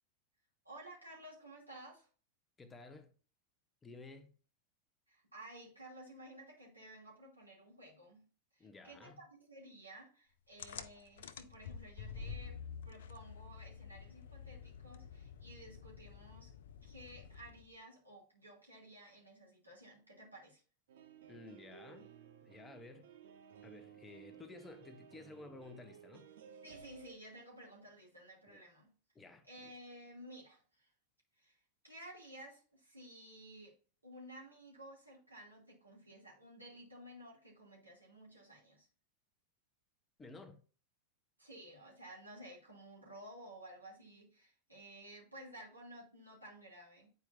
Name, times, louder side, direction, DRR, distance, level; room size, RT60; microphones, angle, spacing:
voice 1, 0.6-2.1 5.1-8.2 8.5-16.5 16.8-20.6 26.6-28.9 29.5-30.9 31.4-33.7 34.0-38.9 41.4-47.1, right 1 dB, 85° right, 2.8 m, -54 dB
voice 2, 2.6-3.1 3.8-4.3 8.6-9.2 21.3-22.1 22.4-23.1 23.6-26.3 28.5-28.6 29.1-29.7 40.2-40.6, left 3 dB, 15° left, 0.8 m, -54 dB
sound 1, 10.6-17.8, left 6 dB, 60° left, 0.5 m, -49 dB
sound 2, 20.9-27.2, right 8 dB, 60° right, 0.9 m, -57 dB
9.3 x 4.4 x 2.6 m
figure-of-eight pair, 90°, 0 cm